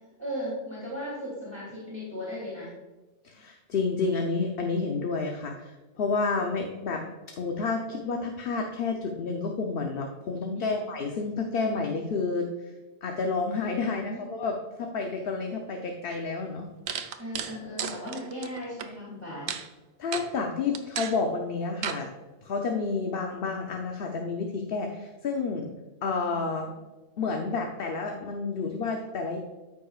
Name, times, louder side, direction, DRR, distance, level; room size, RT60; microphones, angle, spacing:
voice 1, 0.2-2.7 10.5-10.9 13.8-14.2 17.2-19.5, equal, 20° right, -7 dB, 2.7 m, -37 dB
voice 2, 3.2-7.1 7.4-12.5 13.0-16.7 20.0-22.1 22.4-25.7 26.0-26.7 27.2-29.4, left 4 dB, 55° left, 2 dB, 0.9 m, -30 dB
sound 1, 16.1-16.2 16.9-18.9 19.5-19.7 20.1-20.3 20.7-21.2 21.8-22.0, right 7 dB, 80° right, 1.0 m, -33 dB
13.5 x 5.7 x 2.4 m, 1.2 s
omnidirectional pair, 1.2 m